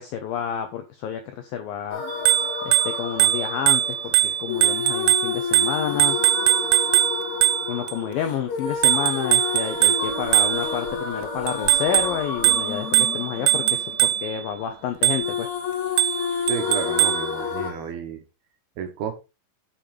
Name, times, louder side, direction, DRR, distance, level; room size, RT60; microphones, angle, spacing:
voice 1, 0.0-2.0 2.6-6.2 7.7-15.5, left 9 dB, 80° left, 2.1 m, -29 dB
sound 1, 1.9-14.8 15.2-17.7, left 6 dB, 50° left, 2.7 m, -30 dB
Bicycle bell, 2.1-7.9 8.8-10.9 11.5-14.4 15.0-15.5 16.0-17.3, right 14 dB, 85° right, 2.3 m, -21 dB
voice 2, 16.5-18.2 18.8-19.1, right 7 dB, 70° right, 2.7 m, -31 dB
7.6 x 7.0 x 4.8 m
omnidirectional pair, 5.4 m